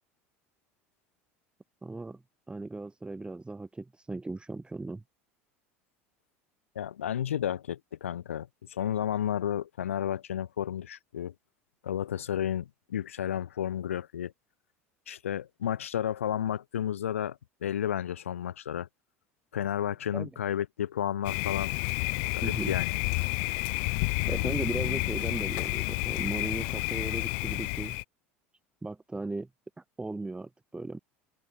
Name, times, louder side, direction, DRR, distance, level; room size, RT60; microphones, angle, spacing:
voice 1, 1.8-2.2 2.5-5.0 20.1-20.3 22.4-22.7 24.3-28.0 28.8-29.5 29.8-31.0, right 3 dB, 15° right, 6.6 m, -37 dB
voice 2, 6.7-11.3 11.8-14.3 15.1-18.9 19.5-21.7 22.3-23.0, left 10 dB, 85° left, 3.1 m, -32 dB
Thunder, 21.2-28.0, left 40 dB or more, 65° left, 0.4 m, -30 dB
open air
hypercardioid pair, 80°, 7 cm